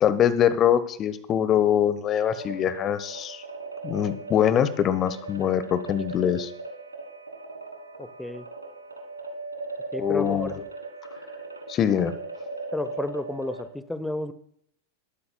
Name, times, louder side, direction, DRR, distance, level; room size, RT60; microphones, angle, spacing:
voice 1, 0.0-3.4 3.8-6.5 10.0-10.6 11.7-12.1, left 9 dB, 30° left, 14 dB, 1.1 m, -23 dB
sound 1, 2.2-13.7, right 3 dB, 80° right, 1.8 m, -38 dB
voice 2, 8.0-8.4 9.9-10.5 12.7-14.3, left 1 dB, 5° left, 14 dB, 1.0 m, -32 dB
21.0 x 12.5 x 2.3 m, 0.69 s
figure-of-eight pair, 90°, 0 cm